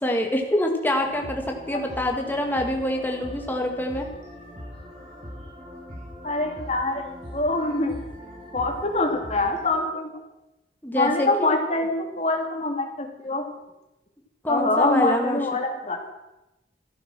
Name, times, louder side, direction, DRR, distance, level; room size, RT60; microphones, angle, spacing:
voice 1, 0.0-4.1 10.8-11.5 14.4-15.4, left 1 dB, 10° left, 2 dB, 2.0 m, -25 dB
sound 1, 1.0-9.7, equal, 40° right, 6.8 m, -41 dB
voice 2, 6.2-8.0 8.5-10.1 11.0-13.4 14.5-16.0, left 2 dB, 35° left, 2 dB, 2.6 m, -25 dB
14.5 x 11.5 x 6.1 m, 0.94 s
head